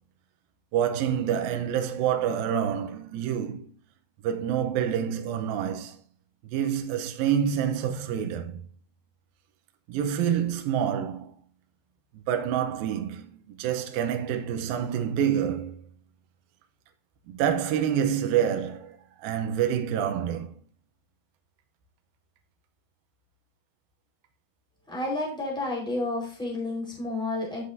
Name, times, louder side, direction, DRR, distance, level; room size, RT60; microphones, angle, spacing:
voice 1, 0.7-3.7 4.2-6.0 6.5-8.6 9.9-11.3 12.3-15.8 17.3-20.6, right 9 dB, 75° right, 2.5 m, -27 dB
voice 2, 24.9-27.6, left 2 dB, ahead, 3.9 m, -30 dB
13.5 x 7.5 x 2.7 m
omnidirectional pair, 4.6 m